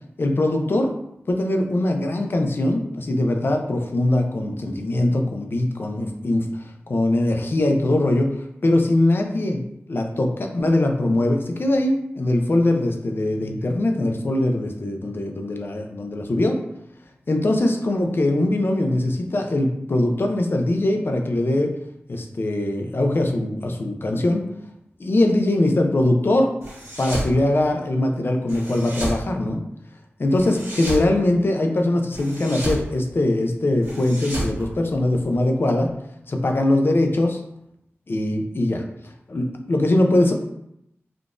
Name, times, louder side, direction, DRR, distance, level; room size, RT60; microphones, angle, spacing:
voice 1, 0.2-0.9 1.3-8.3 8.6-9.6 9.9-16.6 17.3-21.7 22.1-24.5 25.0-26.5 27.0-29.6 30.2-35.9 36.3-37.4 38.1-38.8 39.3-40.3, left 1 dB, 55° left, 4 dB, 0.4 m, -21 dB
sound 1, 26.6-27.3 28.5-29.2 30.3-31.1 32.1-32.8 33.8-35.3, right 1 dB, 75° right, 1.2 m, -31 dB
3.6 x 2.4 x 2.4 m, 0.79 s
wide cardioid pair, 80°, 5 cm